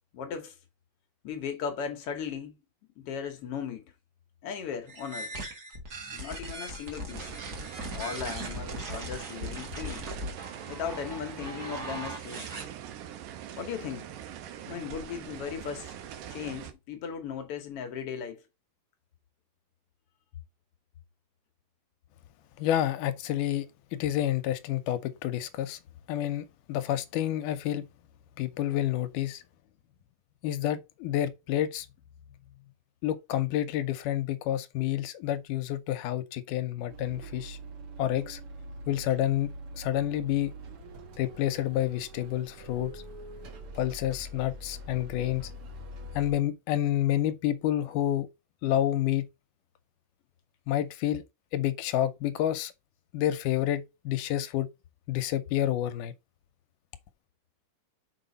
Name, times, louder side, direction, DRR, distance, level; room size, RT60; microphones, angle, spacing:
voice 1, 0.1-0.6 1.2-2.6 3.0-3.8 4.4-5.4 6.1-7.3 7.9-10.0 10.7-12.5 13.6-14.1 14.7-16.0 16.3-18.4, left 7 dB, 65° left, 1.6 m, -37 dB
sound 1, 4.9-12.6, right 1 dB, 40° right, 1.7 m, -39 dB
sound 2, 7.1-16.7, right 10 dB, 85° right, 2.4 m, -43 dB
voice 2, 22.6-23.7 23.9-25.8 26.1-27.9 28.4-29.4 30.4-31.9 33.0-37.6 38.0-38.4 38.9-40.5 41.2-42.9 43.8-45.5 46.2-48.3 48.6-49.3 50.7-51.2 51.5-52.7 53.1-54.7 55.1-56.1, left 12 dB, 85° left, 2.2 m, -29 dB
sound 3, 36.9-46.3, right 1 dB, 55° right, 1.7 m, -44 dB
5.9 x 5.0 x 3.9 m
omnidirectional pair, 3.6 m